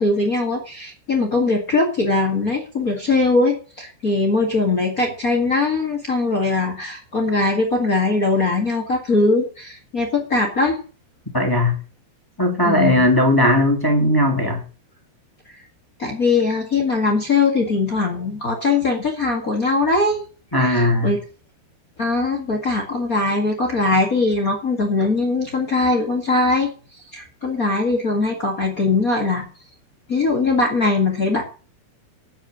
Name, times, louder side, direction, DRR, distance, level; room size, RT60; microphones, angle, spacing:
voice 1, 0.0-10.8 12.6-13.1 16.0-20.2 20.6-21.2 22.0-26.7 27.1-29.4 30.1-31.4, left 3 dB, 55° left, 1 dB, 0.9 m, -21 dB
voice 2, 11.3-11.8 12.4-14.6 20.5-21.1, left 1 dB, 10° left, 1 dB, 1.3 m, -18 dB
9.1 x 8.0 x 8.0 m, 0.37 s
omnidirectional pair, 5.2 m